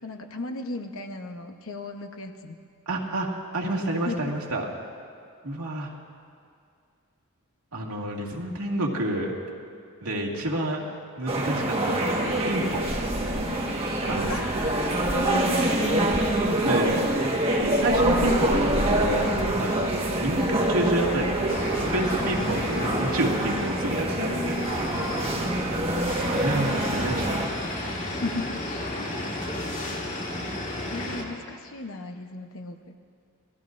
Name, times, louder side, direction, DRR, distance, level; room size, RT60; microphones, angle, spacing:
voice 1, 0.0-2.6 4.0-4.2 14.3-16.1 24.1-24.8 28.0-28.9 30.7-32.8, left 2 dB, 65° left, 5 dB, 1.0 m, -36 dB
voice 2, 2.9-3.3 3.5-4.7 5.4-5.9 7.7-9.3 10.0-10.8 11.2-12.9 14.1-14.3 16.6-17.2 17.6-21.6 21.9-24.6 26.2-27.6, right 1 dB, 80° right, -2 dB, 2.2 m, -29 dB
sound 1, 11.3-27.5, right 1 dB, 25° right, 1.5 m, -26 dB
sound 2, 12.3-13.6 14.0-15.4 15.9-17.2 17.6-19.5, equal, ahead, 0.4 m, -35 dB
sound 3, 21.5-31.2, left 1 dB, 35° left, 1.9 m, -32 dB
27.0 x 19.0 x 2.6 m, 2.3 s
head